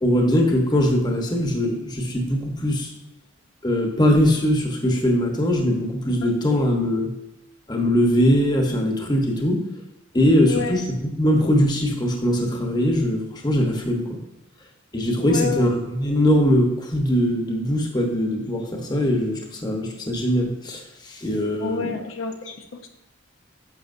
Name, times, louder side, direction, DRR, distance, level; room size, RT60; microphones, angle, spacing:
voice 1, 0.0-2.9 3.6-7.1 7.7-9.6 10.1-14.2 14.9-21.9, equal, 20° left, 1 dB, 1.1 m, -21 dB
voice 2, 6.2-6.7 10.5-10.8 15.2-15.6 21.6-22.9, left 5 dB, 75° left, 4 dB, 0.8 m, -30 dB
10.5 x 6.6 x 2.7 m, 0.87 s
head